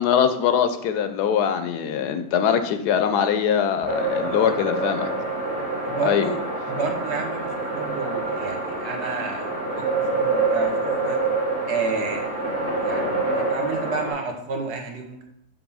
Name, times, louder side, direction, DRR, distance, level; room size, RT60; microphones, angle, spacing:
voice 1, 0.0-5.1 6.0-6.3, left 8 dB, 85° left, 9 dB, 1.2 m, -22 dB
sound 1, 3.9-14.1, right 3 dB, 10° right, 1.9 m, -26 dB
voice 2, 5.8-6.4 6.7-9.8 10.1-11.2 11.7-12.4 12.8-13.1 13.3-15.2, right 4 dB, 80° right, 3 dB, 1.6 m, -31 dB
6.0 x 3.6 x 5.4 m, 0.74 s
omnidirectional pair, 1.7 m